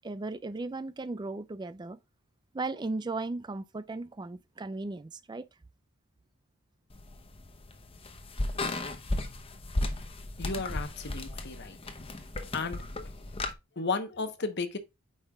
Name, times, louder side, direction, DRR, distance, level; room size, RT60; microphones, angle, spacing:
voice 1, 0.0-2.0 2.5-5.5, right 3 dB, 20° right, 0.3 m, -36 dB
sound 1, 6.9-13.5, left 2 dB, 25° left, 0.8 m, -35 dB
voice 2, 10.4-11.8 12.5-12.8 13.8-14.8, left 4 dB, 50° left, 0.9 m, -33 dB
8.5 x 5.3 x 2.3 m
head